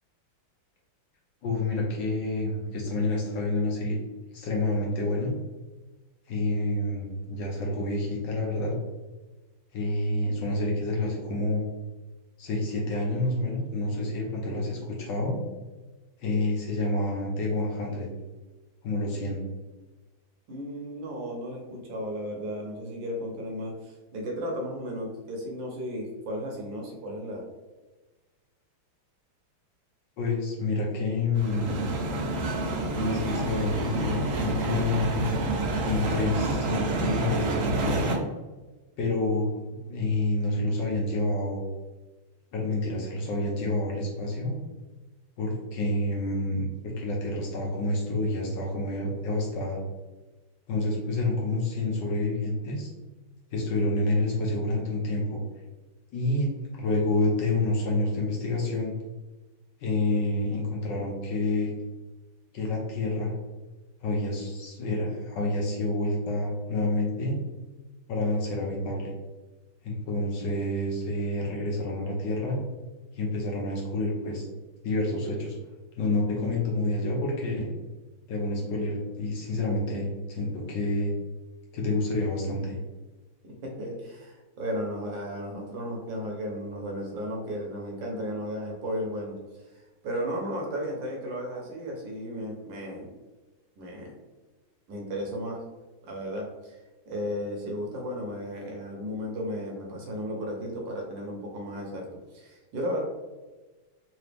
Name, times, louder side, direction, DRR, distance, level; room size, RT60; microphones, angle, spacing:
voice 1, 1.4-4.0 4.3-5.3 6.3-8.8 9.7-11.6 12.4-15.4 16.2-18.1 18.8-19.4 30.2-31.9 32.9-35.3 35.9-38.1 39.0-41.6 42.5-44.6 45.4-49.8 50.7-52.9 53.5-55.4 56.1-58.9 59.8-61.7 62.5-63.3 64.0-67.4 68.1-69.1 69.8-72.6 73.1-74.5 74.8-75.6 76.0-77.7 78.3-81.1 81.7-82.8, left 2 dB, 65° left, -2 dB, 1.2 m, -28 dB
voice 2, 20.5-27.4 83.6-89.3 90.0-93.1 93.8-94.1 94.9-95.6 96.0-96.8 97.1-102.1 102.3-103.0, equal, 65° right, 0 dB, 1.4 m, -34 dB
sound 1, 31.3-38.2, right 2 dB, 85° right, 0.7 m, -28 dB
3.9 x 2.8 x 3.3 m, 1.2 s
omnidirectional pair, 2.3 m